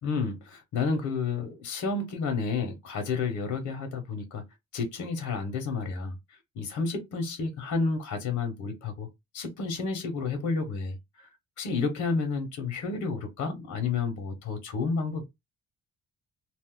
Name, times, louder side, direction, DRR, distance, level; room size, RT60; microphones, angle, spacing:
voice 1, 0.0-4.4 4.7-6.2 6.5-9.1 9.3-11.0 11.6-15.2, left 4 dB, 75° left, 1.2 m, -30 dB
2.7 x 2.1 x 3.7 m
cardioid pair, 90°, 30 cm